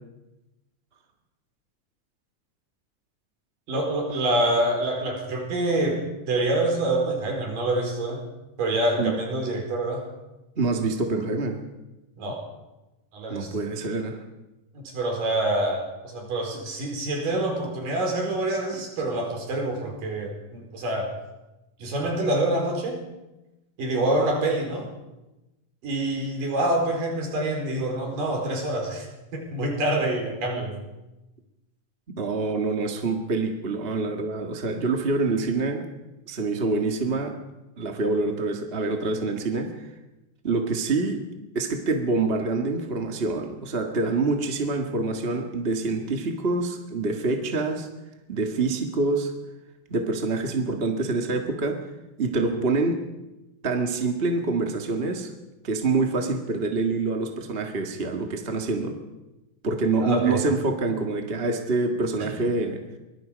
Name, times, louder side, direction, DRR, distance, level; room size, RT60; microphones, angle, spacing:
voice 1, 3.7-8.2 8.6-10.0 12.2-12.4 13.1-13.6 14.7-21.1 21.8-23.0 23.8-24.9 25.8-29.1 29.3-30.8 60.0-60.4 62.2-62.4, right 1 dB, 70° right, 2 dB, 6.2 m, -26 dB
voice 2, 10.6-11.6 13.3-14.2 18.7-18.8 32.2-35.9 36.3-37.4 37.8-39.9 40.4-41.2 41.5-47.9 48.3-49.3 49.9-51.8 52.2-53.0 53.6-55.3 55.6-59.0 59.6-62.8, right 3 dB, 30° right, 3 dB, 1.1 m, -26 dB
23.5 x 23.5 x 5.2 m, 1.0 s
omnidirectional pair, 3.9 m